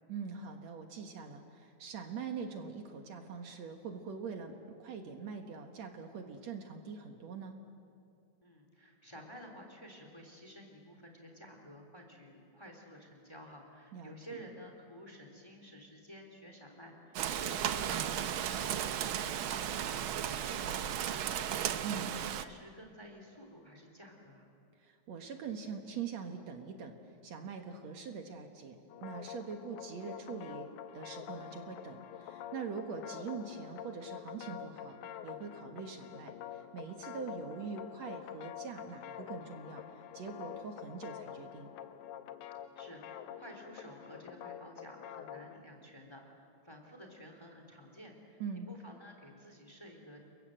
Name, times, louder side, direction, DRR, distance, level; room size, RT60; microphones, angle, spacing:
voice 1, 0.1-4.5 4.8-7.5 13.9-14.4 21.8-22.2 24.8-26.9 27.2-30.7 30.9-35.0 35.2-39.8 40.1-41.7 48.4-48.7, right 5 dB, 65° right, 4 dB, 2.6 m, -43 dB
voice 2, 8.4-24.4 42.7-48.4 48.7-50.2, equal, 10° left, 3 dB, 3.2 m, -52 dB
Rain, 17.1-22.4, right 10 dB, 80° right, 1.1 m, -35 dB
sound 1, 28.9-45.6, left 10 dB, 85° left, 2.3 m, -47 dB
30.0 x 22.5 x 7.8 m, 2.4 s
omnidirectional pair, 3.4 m